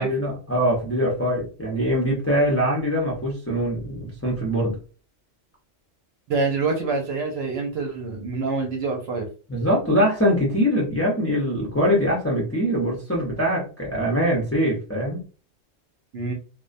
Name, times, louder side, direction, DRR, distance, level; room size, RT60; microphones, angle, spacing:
voice 1, 0.0-4.7 9.5-15.2, equal, 15° left, -4 dB, 0.5 m, -23 dB
voice 2, 6.3-9.3 16.1-16.3, right 4 dB, 65° right, 2 dB, 0.8 m, -26 dB
2.3 x 2.2 x 2.5 m, 0.37 s
omnidirectional pair, 1.3 m